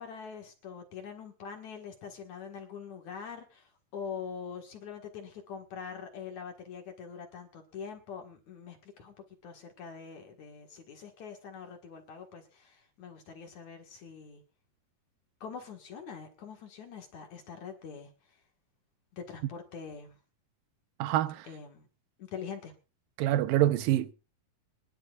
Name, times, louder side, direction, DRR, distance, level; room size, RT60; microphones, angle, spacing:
voice 1, 0.0-14.4 15.4-18.4 19.1-20.2 21.5-21.9 22.2-22.7, left 6 dB, 55° left, 2.9 m, -44 dB
voice 2, 21.0-21.5 23.2-24.1, right 13 dB, 75° right, 2.4 m, -26 dB
24.5 x 11.5 x 2.5 m
omnidirectional pair, 4.3 m